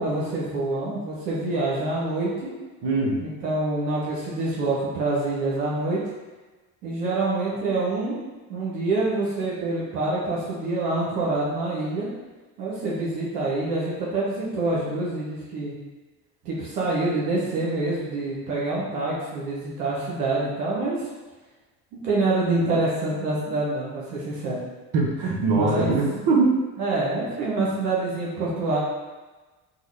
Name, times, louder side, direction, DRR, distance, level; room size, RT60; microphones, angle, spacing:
voice 1, 0.0-2.5 3.2-6.0 6.8-8.2 8.5-12.1 12.6-15.7 16.4-21.1 21.9-24.6 25.5-25.9 26.8-28.8, right 2 dB, 85° right, -6 dB, 0.8 m, -26 dB
voice 2, 2.8-3.2 24.9-26.6, right 3 dB, 60° right, -2 dB, 0.9 m, -21 dB
3.6 x 2.2 x 3.2 m, 1.2 s
hypercardioid pair, 55°, 45 cm